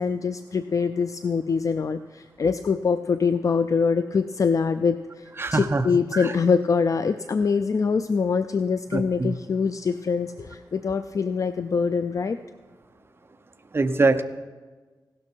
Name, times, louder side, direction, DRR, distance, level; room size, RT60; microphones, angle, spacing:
voice 1, 0.0-12.4, left 5 dB, 45° left, 11 dB, 0.4 m, -24 dB
voice 2, 5.4-5.9 6.1-6.3 8.9-9.3 13.7-14.2, right 3 dB, 30° right, 8 dB, 0.7 m, -23 dB
16.0 x 12.5 x 4.5 m, 1.3 s
wide cardioid pair, 135°, 8 cm